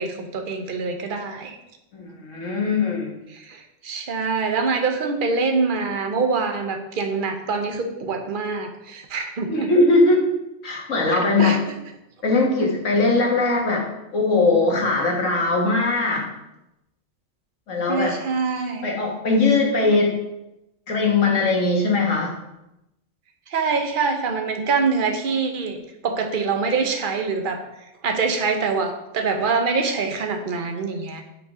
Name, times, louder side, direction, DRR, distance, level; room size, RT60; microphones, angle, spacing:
voice 1, 0.0-1.6 3.3-9.7 11.1-11.6 17.9-18.8 23.5-27.6 28.0-31.2, right 4 dB, 45° right, 5 dB, 1.0 m, -25 dB
voice 2, 1.9-3.1 9.5-10.2 10.6-11.6 12.2-13.9 14.1-16.3 17.7-18.2 18.8-20.2 20.9-22.4, left 3 dB, 65° left, -1 dB, 1.9 m, -20 dB
6.3 x 5.7 x 4.8 m, 0.91 s
omnidirectional pair, 1.4 m